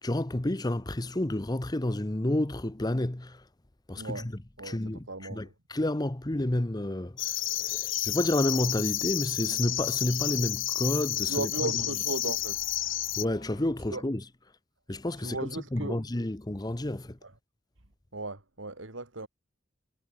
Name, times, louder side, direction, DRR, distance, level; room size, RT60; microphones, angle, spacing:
voice 1, 0.0-3.4 3.9-11.8 13.2-14.2 14.9-17.2, left 1 dB, 20° left, 0.9 m, -30 dB
voice 2, 3.9-4.3 4.6-4.8 5.1-5.5 11.3-12.6 13.9-14.0 15.2-16.0 17.2-17.3 18.1-19.3, right 2 dB, 80° right, 3.4 m, -36 dB
sound 1, 7.2-13.2, left 14 dB, 85° left, 2.0 m, -31 dB
sound 2, 11.7-13.9, left 2 dB, 50° left, 4.3 m, -53 dB
head